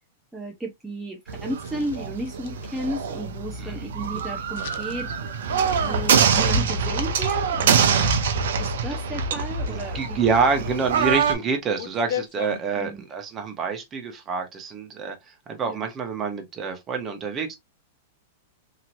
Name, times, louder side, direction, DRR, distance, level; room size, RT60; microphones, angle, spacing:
voice 1, 0.3-5.1 5.8-8.1 8.6-10.2 12.8-13.0 15.6-15.9, right 1 dB, 5° right, 0.6 m, -34 dB
sound 1, 1.3-11.3, right 6 dB, 75° right, 0.7 m, -24 dB
sound 2, 1.4-3.1 4.6-5.1 5.4-7.3 7.9-8.1 9.7-10.1 11.0-11.1 11.3-12.6, left 10 dB, 70° left, 0.5 m, -38 dB
voice 2, 9.6-17.6, right 5 dB, 25° right, 1.0 m, -27 dB
2.9 x 2.9 x 2.6 m
hypercardioid pair, 125°, 0 cm